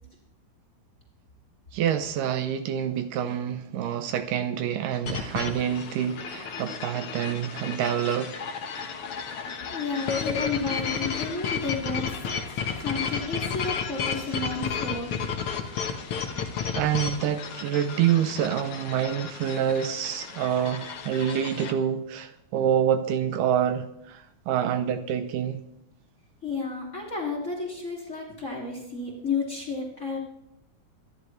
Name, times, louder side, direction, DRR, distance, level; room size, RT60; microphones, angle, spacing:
voice 1, 1.7-8.3 16.7-25.6, right 9 dB, 75° right, 2.3 m, -27 dB
sound 1, 5.1-21.7, left 6 dB, 60° left, 1.6 m, -33 dB
voice 2, 9.7-12.2 12.8-15.3 26.4-30.2, left 4 dB, 25° left, 2.2 m, -32 dB
25.5 x 10.5 x 3.2 m
omnidirectional pair, 3.9 m